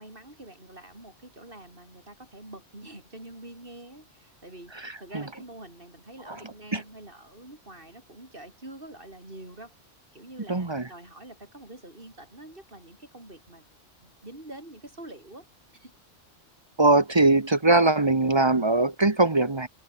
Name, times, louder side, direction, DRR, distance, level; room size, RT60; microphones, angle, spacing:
voice 1, 0.0-4.7 5.0-9.7 10.1-13.6 14.0-15.5 15.7-15.9, right 1 dB, 45° right, 6.6 m, -46 dB
voice 2, 4.8-5.2 6.3-6.4 6.7-6.8 10.5-10.9 16.8-19.7, right 2 dB, 25° right, 1.0 m, -21 dB
omnidirectional pair, 1.3 m